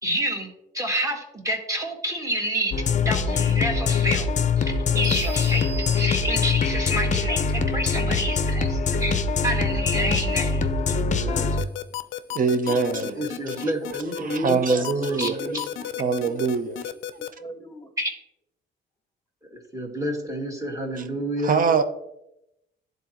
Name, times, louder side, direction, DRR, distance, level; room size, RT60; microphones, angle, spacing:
voice 1, 0.0-4.3 4.5-11.7 13.1-15.6 18.0-18.1 19.5-21.6, equal, 15° right, 1.6 m, -29 dB
sound 1, 2.7-11.6, left 5 dB, 40° left, 0.5 m, -23 dB
sound 2, 5.0-6.8, right 4 dB, 85° right, 2.5 m, -39 dB
sound 3, 11.6-17.3, left 13 dB, 90° left, 0.4 m, -32 dB
voice 2, 12.3-13.2 13.6-13.7 14.2-15.4 16.0-16.8 21.0-21.1 21.4-21.8, right 5 dB, 45° right, 0.7 m, -23 dB
voice 3, 14.4-15.6 16.0-16.7 17.2-18.1, equal, 15° left, 1.2 m, -40 dB
10.5 x 3.9 x 2.9 m
cardioid pair, 90°, 20 cm